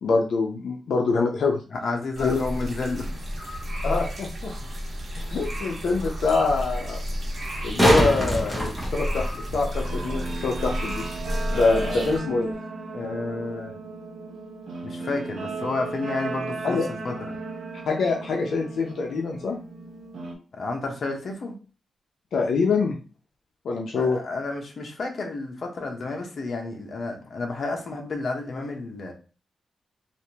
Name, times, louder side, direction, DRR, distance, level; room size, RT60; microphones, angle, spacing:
voice 1, 0.0-1.6 2.2-2.4 3.8-4.5 5.2-7.0 7.6-11.1 11.5-12.5 16.6-16.8 17.9-19.6 22.3-23.0 23.6-24.2, left 4 dB, 85° left, 1 dB, 0.5 m, -24 dB
voice 2, 1.7-3.1 11.5-12.1 12.9-13.7 14.8-17.3 20.5-21.6 23.9-29.1, left 3 dB, 55° left, 2 dB, 0.8 m, -31 dB
sound 1, 2.1-12.2, equal, 45° right, 1.1 m, -32 dB
sound 2, 7.4-9.6 12.4-12.5, equal, 5° right, 1.0 m, -23 dB
Guitar, 9.7-20.3, right 3 dB, 70° right, 0.8 m, -36 dB
3.4 x 2.5 x 2.8 m, 0.36 s
wide cardioid pair, 135°, 0 cm